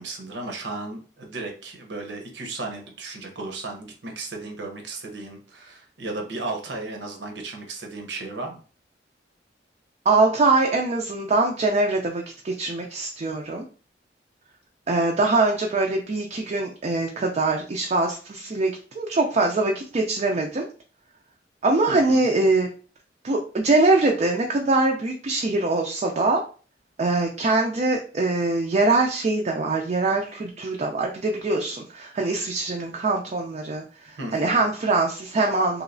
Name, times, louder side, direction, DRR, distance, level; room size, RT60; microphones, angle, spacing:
voice 1, 0.0-8.6 21.9-22.3 34.2-34.7, right 2 dB, 80° right, 3 dB, 0.8 m, -35 dB
voice 2, 10.1-13.6 14.9-20.7 21.6-22.7 23.2-26.4 27.0-35.8, right 3 dB, 40° right, 1 dB, 0.4 m, -23 dB
3.0 x 2.7 x 2.6 m, 0.38 s
head